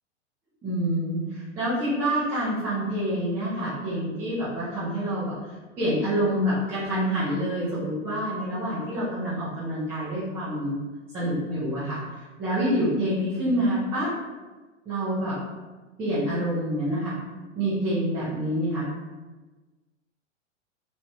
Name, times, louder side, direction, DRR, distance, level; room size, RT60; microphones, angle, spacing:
voice 1, 0.6-5.3 5.8-10.8 11.1-12.0 12.4-14.1 14.9-15.4 16.0-17.2 17.6-18.9, equal, 5° right, -11 dB, 0.3 m, -27 dB
2.9 x 2.7 x 2.2 m, 1.2 s
figure-of-eight pair, 100°, 37 cm